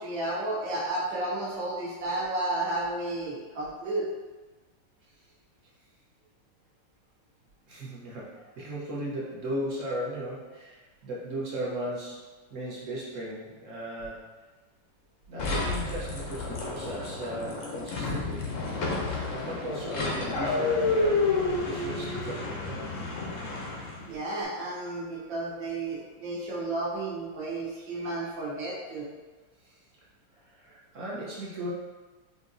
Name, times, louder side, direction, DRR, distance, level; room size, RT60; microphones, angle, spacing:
voice 1, 0.0-4.1 24.1-29.1, right 2 dB, 75° right, -5 dB, 1.7 m, -32 dB
voice 2, 7.7-14.2 15.3-18.5 19.3-22.7 29.6-29.8 30.4-31.7, right 1 dB, 55° right, -6 dB, 1.0 m, -37 dB
sound 1, 15.4-24.1, left 3 dB, 75° left, 0.7 m, -30 dB
4.9 x 2.8 x 2.6 m, 1.3 s
omnidirectional pair, 2.1 m